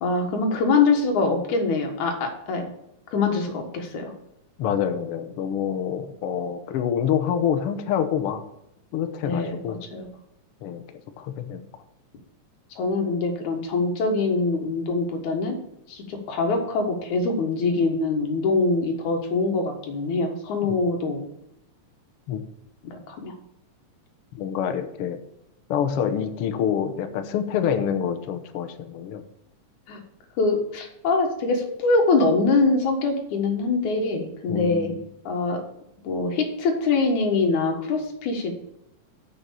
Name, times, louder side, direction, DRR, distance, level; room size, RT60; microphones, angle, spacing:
voice 1, 0.0-2.7 3.1-4.1 9.2-10.1 12.8-15.6 15.9-21.3 22.8-23.3 29.9-30.0 30.4-34.9 35.2-35.6 36.0-38.5, left 3 dB, 90° left, 3 dB, 3.0 m, -24 dB
voice 2, 4.6-8.4 8.9-9.8 10.6-11.7 20.6-20.8 22.3-22.4 24.3-25.2 25.7-29.2 34.5-35.0, left 8 dB, 65° left, 7 dB, 1.6 m, -27 dB
7.6 x 7.0 x 6.8 m, 0.80 s
omnidirectional pair, 3.3 m